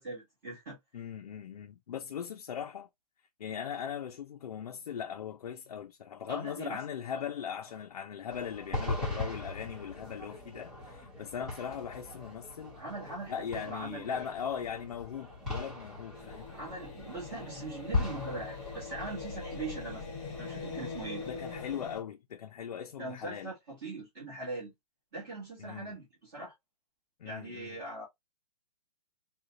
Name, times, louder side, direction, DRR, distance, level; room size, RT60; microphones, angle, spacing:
voice 1, 0.0-0.8 6.3-6.8 7.1-7.2 12.7-14.3 16.5-20.0 20.4-21.3 23.0-24.7 25.1-26.5 27.2-28.0, right 2 dB, 30° right, 1.6 m, -41 dB
voice 2, 0.9-2.9 3.4-12.7 13.3-16.5 21.3-23.5 25.6-26.0 27.2-27.8, left 8 dB, 70° left, 0.5 m, -39 dB
sound 1, 8.3-21.8, left 3 dB, ahead, 0.4 m, -40 dB
sound 2, 16.1-22.0, left 4 dB, 15° left, 0.9 m, -42 dB
3.8 x 2.3 x 2.5 m
hypercardioid pair, 180°, 20 cm